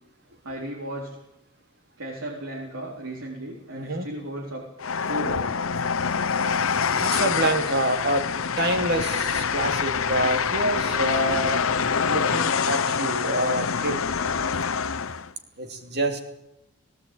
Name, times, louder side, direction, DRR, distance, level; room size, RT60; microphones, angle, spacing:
voice 1, 0.4-1.2 2.0-4.7 5.0-5.5, right 1 dB, 70° right, -2 dB, 3.9 m, -35 dB
voice 2, 3.7-4.1 6.4-6.5 6.8-8.3 8.6-11.7 12.0-14.0 15.6-16.2, right 1 dB, 50° right, 6 dB, 2.8 m, -27 dB
Train, 4.8-15.3, left 6 dB, 70° left, 0.8 m, -25 dB
18.5 x 17.5 x 9.1 m, 0.86 s
head